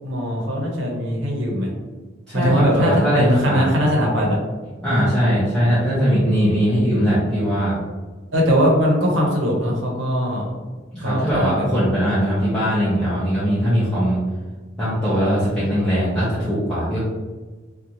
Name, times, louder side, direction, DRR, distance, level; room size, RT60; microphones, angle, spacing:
voice 1, 0.0-1.7 2.3-4.4 8.3-10.5 11.0-11.6, equal, 75° right, -2 dB, 0.8 m, -20 dB
voice 2, 2.3-3.7 4.8-7.8 10.9-14.2 14.8-17.0, equal, 5° left, -13 dB, 0.6 m, -20 dB
2.6 x 2.3 x 2.9 m, 1.3 s
head